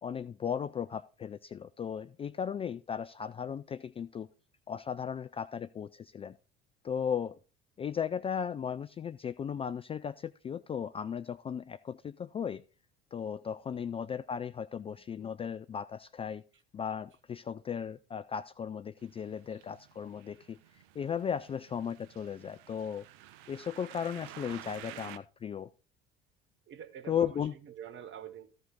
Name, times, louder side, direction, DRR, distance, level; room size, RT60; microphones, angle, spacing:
voice 1, 0.0-4.3 4.7-6.4 6.8-7.4 7.8-12.6 13.1-16.4 16.7-20.6 20.9-23.0 23.5-25.7 27.1-27.5, left 7 dB, 20° left, 0.4 m, -36 dB
sound 1, 19.0-25.2, right 13 dB, 60° right, 0.7 m, -51 dB
voice 2, 26.7-28.5, right 9 dB, 40° right, 1.3 m, -46 dB
14.0 x 5.3 x 3.9 m
figure-of-eight pair, 60°, 29 cm